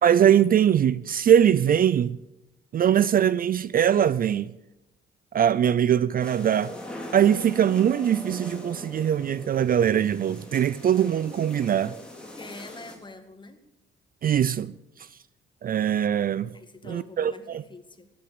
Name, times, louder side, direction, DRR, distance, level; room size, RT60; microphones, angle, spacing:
voice 1, 0.0-2.2 2.7-4.5 5.3-6.7 7.1-11.9 14.2-15.1 15.6-16.5 16.9-17.6, right 9 dB, 45° right, 0.5 m, -22 dB
sound 1, 6.2-13.0, left 1 dB, 5° left, 4.2 m, -41 dB
voice 2, 12.2-13.6 16.5-18.1, left 3 dB, 25° left, 1.9 m, -45 dB
15.5 x 10.0 x 6.8 m
cardioid pair, 90°, 20 cm